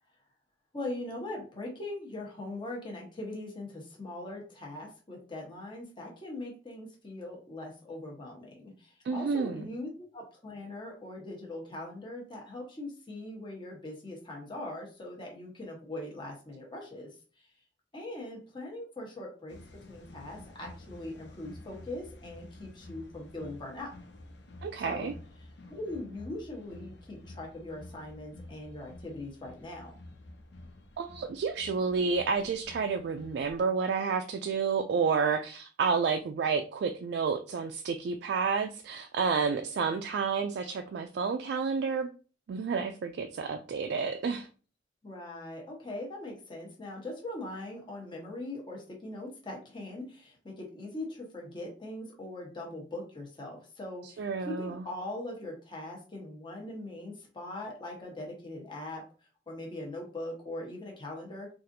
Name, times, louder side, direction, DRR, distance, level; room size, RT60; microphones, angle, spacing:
voice 1, 0.7-17.1 17.9-19.6 19.9-23.9 24.8-25.1 25.7-30.0 45.0-59.0 59.5-61.5, left 1 dB, 25° left, 1.0 m, -41 dB
voice 2, 9.0-9.7 24.6-25.1 31.0-42.1 42.5-44.5 54.2-54.9, right 5 dB, 65° right, 0.3 m, -30 dB
sound 1, 19.5-33.6, left 2 dB, 70° left, 0.6 m, -50 dB
4.1 x 2.5 x 2.6 m
head